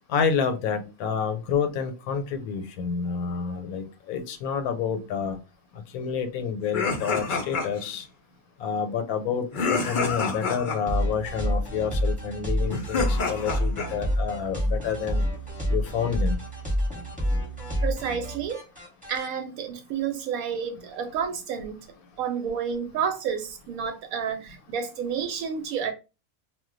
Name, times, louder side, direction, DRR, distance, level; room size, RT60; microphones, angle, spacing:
voice 1, 0.1-5.4 5.7-8.1 8.6-15.3 15.7-16.4, left 6 dB, 85° left, 1.0 m, -29 dB
sound 1, 6.7-8.0 9.5-10.8 12.6-13.9, left 4 dB, 55° left, 0.5 m, -28 dB
sound 2, 10.9-19.3, equal, 5° right, 0.9 m, -28 dB
voice 2, 17.8-18.6 19.1-21.8 22.2-25.9, right 7 dB, 80° right, 1.0 m, -30 dB
2.3 x 2.2 x 3.7 m
omnidirectional pair, 1.5 m